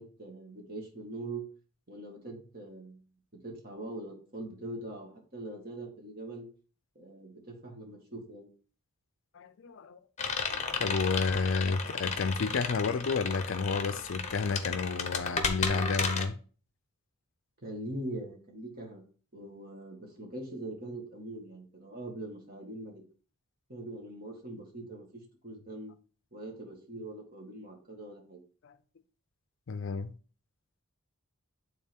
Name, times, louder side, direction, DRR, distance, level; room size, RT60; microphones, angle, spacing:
voice 1, 0.0-1.4 1.9-3.0 3.4-6.5 7.0-8.5 17.6-19.0 19.3-23.0 23.7-25.9 26.3-28.4, right 1 dB, 40° right, 1.8 m, -42 dB
voice 2, 9.3-10.0 10.5-16.4 28.6-28.8 29.7-30.1, left 4 dB, 55° left, 0.4 m, -31 dB
sound 1, 10.2-16.3, left 5 dB, 30° left, 0.8 m, -34 dB
8.8 x 3.8 x 3.6 m
head